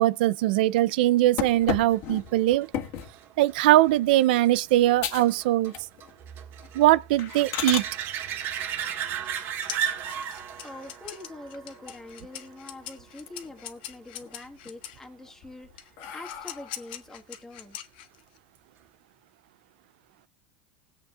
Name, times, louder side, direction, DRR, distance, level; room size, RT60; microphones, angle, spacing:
voice 1, 0.0-2.7 3.4-5.7 6.7-7.8, right 15 dB, 75° right, 0.5 m, -21 dB
sound 1, 1.4-3.2 3.7-4.0 4.5-4.6 5.0-5.4 5.7-6.2 6.5-6.7 7.2-7.9 9.9-10.6 11.0-11.1 11.5-11.6 11.9-12.7 13.1-13.7 14.1-14.7 15.2-17.0, left 10 dB, 55° left, 1.8 m, -35 dB
sound 2, 1.6-12.9 18.6-18.7, right 9 dB, 50° right, 1.8 m, -36 dB
sound 3, 8.8-15.0 15.8-18.4, left 12 dB, 80° left, 1.5 m, -42 dB
voice 2, 10.0-10.3 10.6-17.8, left 2 dB, 10° left, 1.7 m, -44 dB
20.5 x 8.1 x 2.4 m
supercardioid pair, 125°, 5 cm